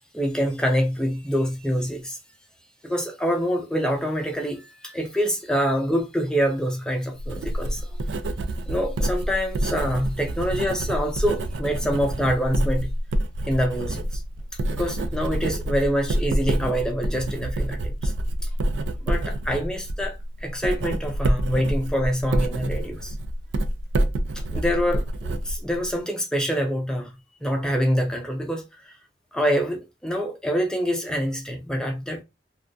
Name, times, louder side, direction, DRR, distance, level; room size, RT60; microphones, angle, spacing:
voice 1, 0.1-2.2 2.8-7.9 8.7-12.9 13.5-14.2 14.7-18.1 19.0-23.1 24.5-27.1 27.4-28.9 29.3-32.2, equal, 5° left, 0.4 m, -26 dB
Writing, 7.1-26.0, right 1 dB, 80° right, 0.3 m, -27 dB
2.3 x 2.2 x 2.5 m
head